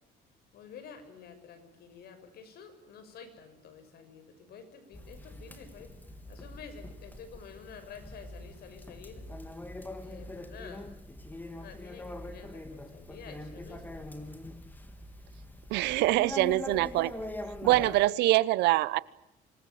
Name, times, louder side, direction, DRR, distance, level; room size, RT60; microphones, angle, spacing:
voice 1, 0.5-5.9 6.3-9.3 10.0-10.9 11.5-14.5 16.4-16.6 18.0-18.2, left 6 dB, 70° left, 6.4 m, -50 dB
Conversation, 4.9-18.1, left 1 dB, 10° left, 3.4 m, -43 dB
voice 2, 15.7-17.1 17.6-19.0, right 18 dB, 90° right, 1.0 m, -24 dB
26.5 x 21.5 x 9.3 m
cardioid pair, 110°, 17 cm